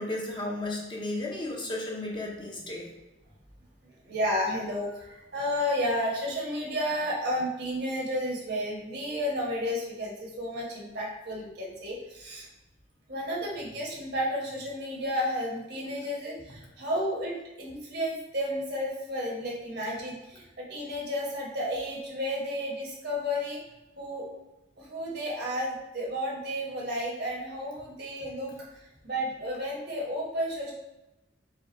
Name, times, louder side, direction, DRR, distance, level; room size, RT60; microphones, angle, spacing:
voice 1, 0.0-2.9, left 2 dB, 25° left, -2 dB, 0.8 m, -34 dB
voice 2, 4.0-12.5 13.1-23.6 24.0-24.3 24.8-28.7 29.0-30.7, equal, 60° right, -3 dB, 1.4 m, -32 dB
4.8 x 2.4 x 4.1 m, 0.99 s
head